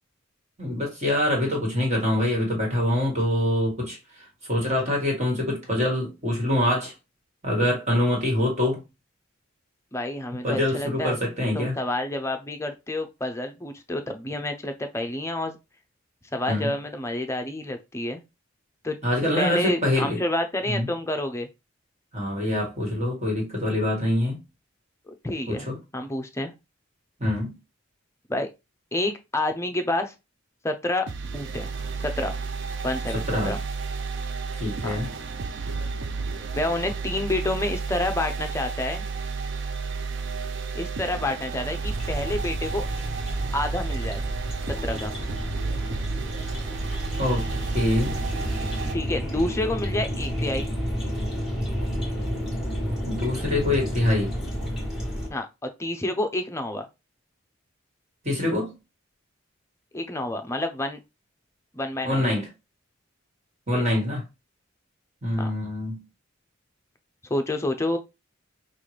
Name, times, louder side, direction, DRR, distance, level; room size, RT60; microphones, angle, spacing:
voice 1, 0.6-4.0 4.5-6.9 7.4-8.8 10.4-11.7 16.5-16.7 19.0-20.2 20.7-20.9 22.1-24.4 25.5-25.7 27.2-27.5 33.1-33.5 34.6-35.1 47.2-47.5 47.7-48.2 53.0-54.3 58.2-58.7 62.0-62.5 63.7-64.2 65.2-66.0, left 1 dB, 35° right, 1.7 m, -25 dB
voice 2, 9.9-11.2 11.5-15.6 16.3-18.2 18.8-19.0 19.4-21.5 25.1-25.7 25.9-26.5 28.3-28.5 28.9-30.1 30.6-31.1 31.3-31.7 32.0-32.4 32.8-33.6 34.8-35.0 36.5-39.0 40.7-42.8 43.5-44.2 44.8-45.1 48.9-50.7 55.3-56.9 59.9-61.0 61.7-62.3 63.7-63.8 65.4-65.5 67.3-68.0, left 1 dB, 15° left, 0.6 m, -28 dB
sound 1, 31.1-48.9, right 4 dB, 60° right, 0.5 m, -32 dB
sound 2, 41.8-55.3, equal, 5° right, 1.5 m, -31 dB
5.5 x 2.4 x 3.2 m
head